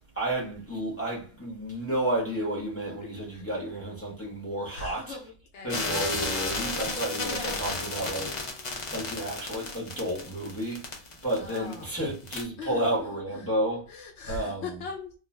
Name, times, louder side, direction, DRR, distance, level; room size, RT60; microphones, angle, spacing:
voice 1, 0.2-5.2 5.6-8.3 8.9-10.8 11.2-13.9 14.3-14.7, right 1 dB, 15° left, 0.9 m, -31 dB
voice 2, 3.0-3.4 4.7-6.0 7.2-7.7 11.3-11.9 12.6-13.6 13.9-15.1, left 4 dB, 85° left, 0.9 m, -41 dB
sound 1, 5.7-11.9 12.3-12.4, left 3 dB, 40° left, 0.5 m, -33 dB
2.4 x 2.3 x 3.1 m
omnidirectional pair, 1.1 m